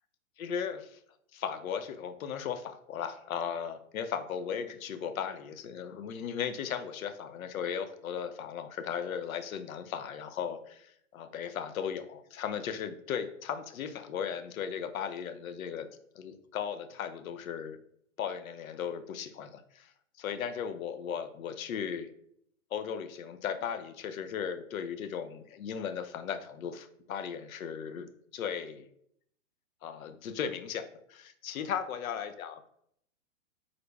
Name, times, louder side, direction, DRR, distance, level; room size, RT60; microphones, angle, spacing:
voice 1, 0.4-1.0 1.3-15.9 16.2-17.8 18.2-19.9 20.2-22.1 22.7-28.9 29.8-32.7, left 7 dB, 80° left, 9 dB, 0.5 m, -36 dB
3.9 x 2.2 x 3.1 m, 0.70 s
hypercardioid pair, 125°, 42 cm